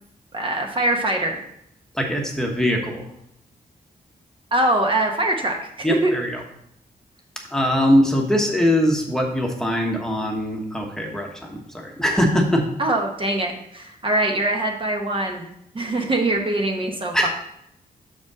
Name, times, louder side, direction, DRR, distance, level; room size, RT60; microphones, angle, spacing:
voice 1, 0.3-1.4 4.5-6.1 12.8-15.5 15.7-17.3, right 1 dB, 35° right, 2 dB, 1.0 m, -23 dB
voice 2, 1.9-3.1 5.8-6.4 7.5-12.7 17.1-17.3, equal, 5° left, 1 dB, 1.1 m, -21 dB
6.5 x 5.1 x 4.8 m, 0.75 s
wide cardioid pair, 120°, 15 cm